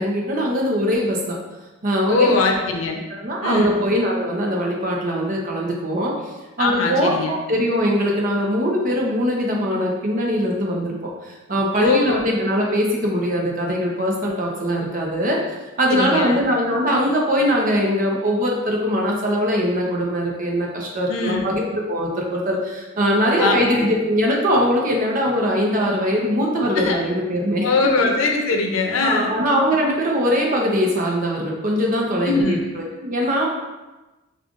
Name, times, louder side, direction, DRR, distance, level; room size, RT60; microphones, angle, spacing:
voice 1, 0.0-1.4 1.8-2.4 3.1-6.1 6.6-15.4 15.8-27.7 29.0-33.5, equal, 45° right, -1 dB, 0.7 m, -21 dB
voice 2, 2.1-3.0 3.4-3.8 6.6-7.3 11.8-12.2 15.9-16.4 21.1-21.5 23.4-23.9 26.8-27.0 27.6-29.3 32.3-32.6, left 3 dB, 85° left, 2 dB, 0.6 m, -21 dB
5.2 x 2.4 x 2.4 m, 1.1 s
head